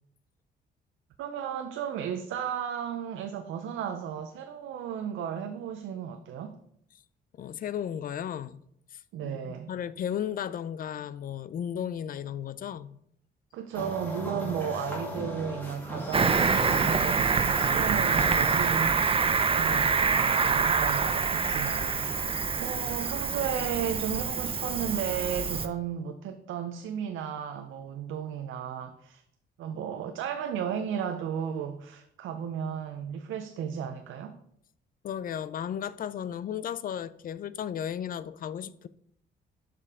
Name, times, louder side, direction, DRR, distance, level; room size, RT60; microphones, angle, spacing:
voice 1, 1.2-6.6 9.1-9.7 13.5-19.0 19.5-22.1 22.6-29.2 29.6-34.4, right 8 dB, 80° right, 0.5 m, -34 dB
voice 2, 7.4-8.6 8.9-13.0 35.0-38.9, left 9 dB, 45° left, 0.4 m, -35 dB
sound 1, 13.7-19.9, equal, 10° left, 2.1 m, -38 dB
Cricket, 16.1-25.7, right 5 dB, 30° right, 0.5 m, -26 dB
6.6 x 5.2 x 3.6 m
cardioid pair, 90°, 20 cm